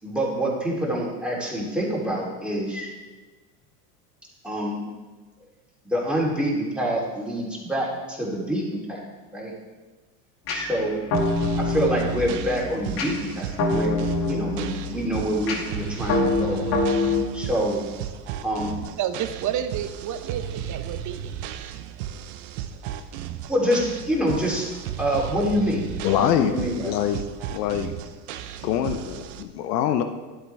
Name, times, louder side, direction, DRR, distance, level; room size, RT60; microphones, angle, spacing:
voice 1, 0.0-2.9 4.4-4.8 5.8-9.0 9.3-9.5 10.5-11.0 11.6-16.6 17.3-17.8 18.4-18.8 23.5-24.7 25.0-25.9 26.1-26.9, equal, ahead, -4 dB, 3.3 m, -26 dB
sound 1, 10.5-17.2, left 3 dB, 50° left, 2.3 m, -26 dB
sound 2, 11.1-29.4, right 10 dB, 60° right, 0.9 m, -35 dB
voice 2, 19.0-21.4, right 9 dB, 40° right, 10 dB, 0.9 m, -30 dB
voice 3, 26.0-26.5 26.8-27.2 27.5-27.9 28.6-30.0, left 10 dB, 75° left, 8 dB, 0.9 m, -24 dB
12.0 x 8.1 x 3.4 m, 1.3 s
hypercardioid pair, 90°, 48 cm